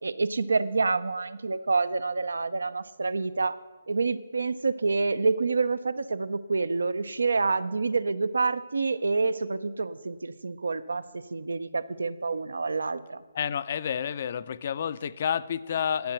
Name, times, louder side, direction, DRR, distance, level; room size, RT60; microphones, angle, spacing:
voice 1, 0.0-3.6 3.9-13.2, right 4 dB, 85° right, 15 dB, 0.6 m, -28 dB
voice 2, 13.3-16.1, left 8 dB, 50° left, 16 dB, 0.4 m, -30 dB
10.5 x 7.5 x 8.0 m, 1.3 s
hypercardioid pair, 150°, 0 cm